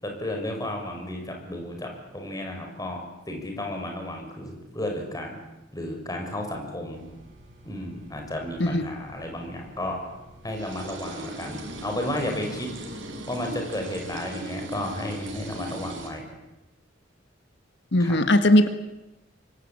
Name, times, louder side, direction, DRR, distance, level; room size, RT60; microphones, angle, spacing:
voice 1, 0.0-5.4 5.7-7.0 7.6-10.0 10.4-12.7 13.3-16.2 18.0-18.2, left 1 dB, 20° left, 2 dB, 6.2 m, -33 dB
sound 1, 6.9-16.1, right 1 dB, 70° right, 6.8 m, -40 dB
voice 2, 17.9-18.7, left 1 dB, 65° left, 9 dB, 1.8 m, -18 dB
26.0 x 23.0 x 8.8 m, 0.97 s
head